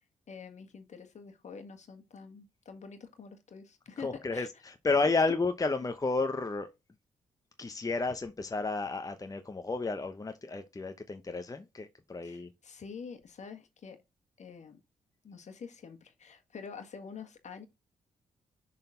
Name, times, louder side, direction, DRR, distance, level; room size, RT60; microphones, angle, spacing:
voice 1, 0.3-4.5 5.2-5.3 12.2-14.0 14.4-14.8 15.2-17.7, left 5 dB, 55° left, 1.6 m, -46 dB
voice 2, 4.0-6.7 7.6-12.5, left 3 dB, 25° left, 0.9 m, -32 dB
6.6 x 4.1 x 3.8 m
hypercardioid pair, 45°, 14 cm